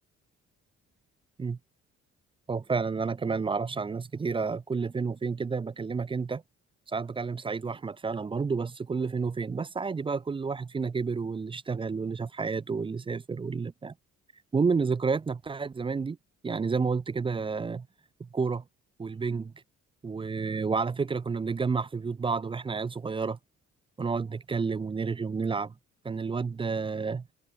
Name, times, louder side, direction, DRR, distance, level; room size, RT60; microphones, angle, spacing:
voice 1, 2.5-6.4 6.9-13.9 14.5-16.2 16.4-17.9 18.2-18.6 19.0-19.5 20.0-23.4 24.0-25.7 26.0-27.3, right 5 dB, 20° right, 0.3 m, -30 dB
cardioid pair, 90°, 30 cm